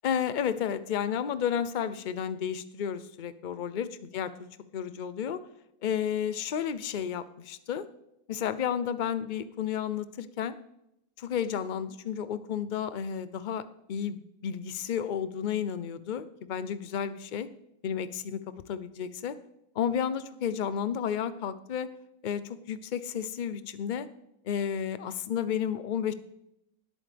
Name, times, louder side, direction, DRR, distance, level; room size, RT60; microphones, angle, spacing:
voice 1, 0.0-5.4 5.8-7.9 8.3-10.6 11.2-17.5 17.8-18.4 18.7-19.4 19.8-21.9 22.2-24.1 24.4-26.1, left 8 dB, 45° left, 13 dB, 0.6 m, -32 dB
18.5 x 8.6 x 3.4 m, 0.83 s
omnidirectional pair, 1.6 m